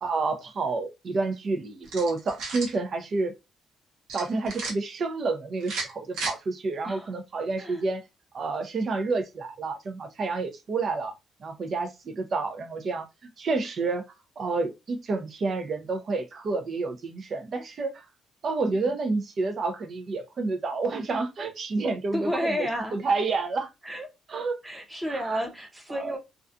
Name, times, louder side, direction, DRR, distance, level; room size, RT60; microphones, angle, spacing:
voice 1, 0.0-3.3 4.1-8.0 8.3-11.1 11.4-13.1 13.4-14.0 14.4-18.0 18.4-22.6 22.9-23.7 24.3-24.6 26.0-26.1, right 3 dB, 50° right, 0.5 m, -29 dB
sound 1, 1.8-2.8 4.1-4.7 5.6-6.3, right 3 dB, 80° right, 0.9 m, -34 dB
voice 2, 6.8-7.2 7.6-7.8 18.6-18.9 22.1-23.0 23.8-24.1 24.6-26.2, equal, 10° right, 0.7 m, -31 dB
2.4 x 2.3 x 2.5 m
cardioid pair, 90°, 0 cm